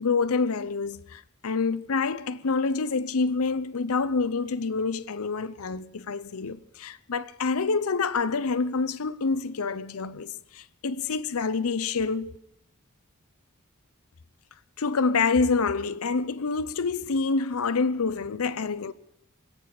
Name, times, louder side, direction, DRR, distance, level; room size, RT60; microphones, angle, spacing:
voice 1, 0.0-12.3 14.8-18.9, left 4 dB, 80° left, 0.7 m, -27 dB
26.0 x 9.0 x 5.9 m
head